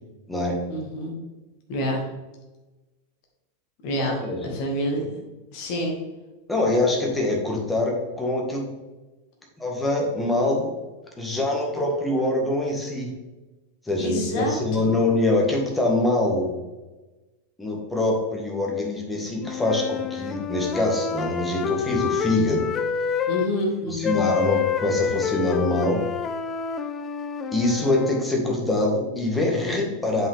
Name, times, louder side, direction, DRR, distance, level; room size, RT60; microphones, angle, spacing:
voice 1, 0.7-1.1 1.7-2.0 3.8-5.1 5.5-5.9 14.0-14.9 23.3-24.2, equal, 45° left, 1 dB, 1.8 m, -27 dB
voice 2, 4.0-4.6 6.5-8.6 9.6-10.7 11.2-13.1 13.8-16.5 17.6-22.7 23.9-26.0 27.5-30.3, left 2 dB, 10° left, -1 dB, 1.7 m, -24 dB
sound 1, 19.4-23.5 24.0-28.3, left 7 dB, 25° left, 0.4 m, -28 dB
7.3 x 5.5 x 3.5 m, 1.1 s
figure-of-eight pair, 90°, 0 cm